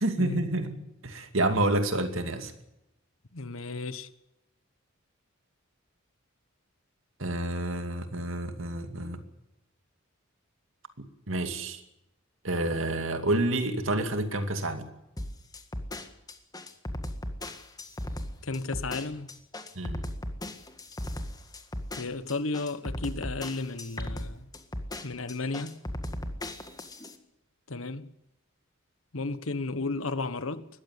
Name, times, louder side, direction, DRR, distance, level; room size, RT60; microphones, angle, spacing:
voice 1, 0.0-2.5 7.2-9.2 11.0-11.8 12.4-14.9 19.8-20.0, right 1 dB, 70° right, 2.5 m, -29 dB
voice 2, 3.3-4.1 18.4-19.3 22.0-24.5 25.0-25.8 27.7-28.1 29.1-30.7, left 3 dB, 90° left, 1.3 m, -33 dB
sound 1, 15.2-27.1, left 1 dB, 20° left, 1.8 m, -37 dB
20.5 x 15.0 x 9.8 m
head